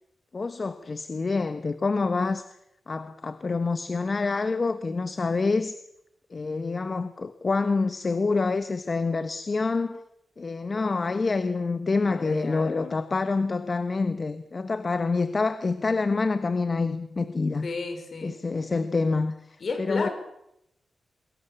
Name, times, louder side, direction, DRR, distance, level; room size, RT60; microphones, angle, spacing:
voice 1, 0.3-2.4 2.9-5.7 6.3-10.0 10.4-17.7 18.2-20.1, left 3 dB, 40° left, 10 dB, 1.2 m, -27 dB
voice 2, 12.1-12.9 17.6-18.4 19.6-20.1, left 4 dB, 60° left, 6 dB, 6.0 m, -33 dB
24.0 x 22.5 x 7.1 m, 0.80 s
wide cardioid pair, 90°, 0 cm